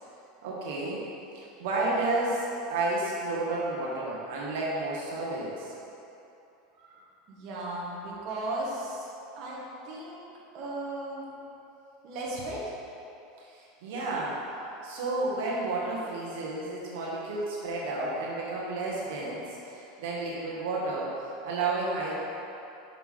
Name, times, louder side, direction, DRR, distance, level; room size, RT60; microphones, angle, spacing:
voice 1, 0.4-1.0 1.3-5.7 13.5-14.4 14.8-22.1, right 2 dB, 75° right, -5 dB, 1.4 m, -31 dB
voice 2, 7.3-9.1 9.3-9.6 9.8-10.2 10.5-11.2 12.0-12.7, right 2 dB, 50° right, -5 dB, 1.3 m, -36 dB
6.3 x 5.6 x 3.7 m, 2.9 s
supercardioid pair, 140°, 0 cm